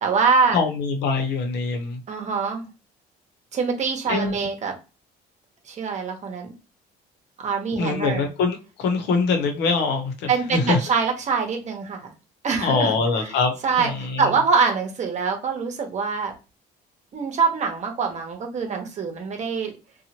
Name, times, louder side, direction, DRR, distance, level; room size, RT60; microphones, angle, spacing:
voice 1, 0.0-0.6 2.1-2.7 3.5-4.7 5.7-6.5 7.4-8.3 10.3-12.1 12.4-13.3 13.6-16.3 17.1-19.7, right 5 dB, 45° right, 0.9 m, -24 dB
voice 2, 0.5-2.0 4.1-4.5 7.8-10.8 12.6-14.3, left 4 dB, 85° left, 0.8 m, -24 dB
2.8 x 2.3 x 2.9 m
cardioid pair, 110°, 17 cm